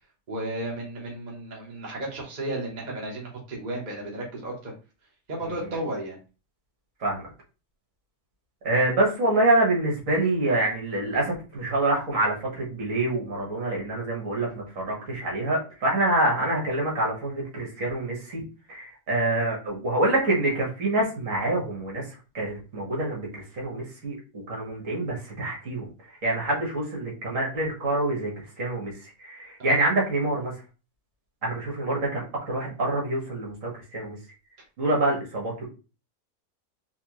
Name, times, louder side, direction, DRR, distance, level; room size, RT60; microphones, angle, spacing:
voice 1, 0.3-4.7 5.3-6.2 29.6-29.7, right 1 dB, 30° right, -3 dB, 1.1 m, -33 dB
voice 2, 8.6-22.1 22.3-25.9 26.2-30.5 31.4-34.2 34.8-35.7, right 2 dB, 60° right, -2 dB, 1.8 m, -26 dB
4.4 x 2.3 x 3.0 m, 0.32 s
omnidirectional pair, 1.6 m